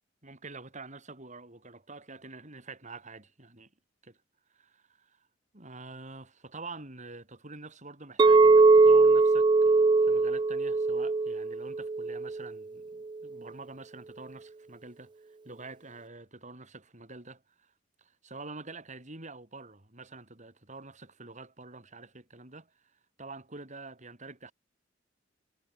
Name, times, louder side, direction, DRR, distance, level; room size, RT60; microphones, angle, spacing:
voice 1, 0.2-3.7 4.0-4.2 4.5-5.3 5.5-17.7 18.0-22.9 23.2-24.5, right 3 dB, 40° right, 5.8 m, -47 dB
Chink clink, 8.2-12.5, right 3 dB, 25° right, 0.3 m, -21 dB
head